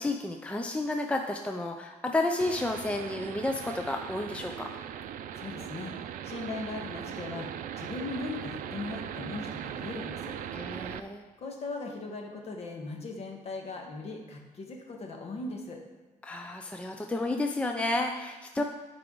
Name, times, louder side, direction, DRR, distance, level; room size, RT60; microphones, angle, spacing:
voice 1, 0.0-4.7 10.5-11.2 16.2-18.6, left 2 dB, 10° left, 4 dB, 0.5 m, -31 dB
sound 1, 2.4-11.0, right 9 dB, 70° right, 0.5 m, -39 dB
voice 2, 5.3-5.9 6.2-7.5 7.8-10.4 11.4-15.8, left 3 dB, 50° left, 2 dB, 1.5 m, -38 dB
12.0 x 4.8 x 3.9 m, 1.3 s
cardioid pair, 125°, 14 cm